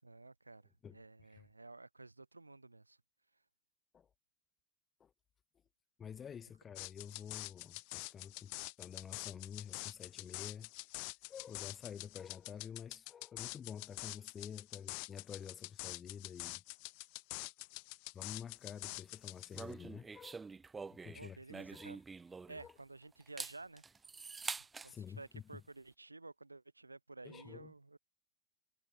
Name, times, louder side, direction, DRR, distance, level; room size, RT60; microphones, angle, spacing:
voice 1, 0.0-3.0 3.3-3.4 21.1-22.0 22.5-23.8 24.5-24.6 24.8-28.0, right 2 dB, 80° right, 0.8 m, -53 dB
voice 2, 6.0-8.5 8.8-10.7 11.3-16.6 18.1-20.5 20.9-21.4 21.7-21.9 22.6-22.7 24.9-25.4 27.2-27.7, left 8 dB, 20° left, 3.1 m, -49 dB
sound 1, 6.8-19.7, left 40 dB or more, 45° left, 1.3 m, -46 dB
sound 2, 19.5-22.8 23.2-24.9, right 4 dB, 15° right, 0.5 m, -46 dB
figure-of-eight pair, 90°, 0 cm